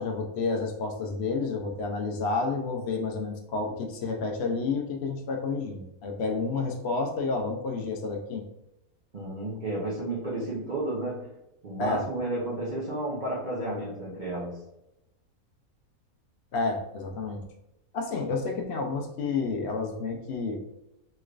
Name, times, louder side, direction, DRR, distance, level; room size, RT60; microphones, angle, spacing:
voice 1, 0.0-8.4 11.8-12.0 16.5-17.4 17.9-20.6, left 4 dB, 70° left, 2 dB, 0.6 m, -30 dB
voice 2, 9.1-11.3 11.6-14.6, right 1 dB, 50° right, -6 dB, 0.5 m, -32 dB
3.2 x 3.0 x 2.4 m, 0.87 s
omnidirectional pair, 1.6 m